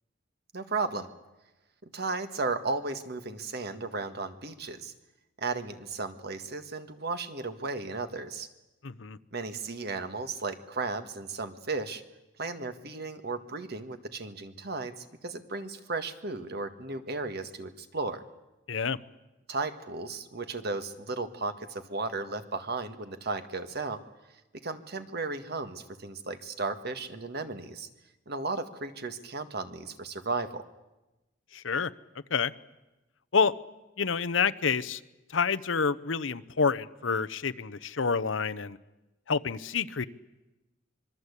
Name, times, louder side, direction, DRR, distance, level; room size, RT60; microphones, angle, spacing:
voice 1, 0.5-1.1 1.9-4.9 5.4-8.5 9.3-12.0 12.4-18.2 19.5-24.0 24.5-27.9 28.3-30.7, right 3 dB, 60° right, 9 dB, 1.7 m, -35 dB
voice 2, 8.8-9.2 18.7-19.0 31.5-31.9 32.3-32.5 33.3-33.5 34.0-35.0 35.3-38.8 39.3-40.1, left 5 dB, 85° left, 15 dB, 0.8 m, -28 dB
25.5 x 22.5 x 8.4 m, 1.0 s
head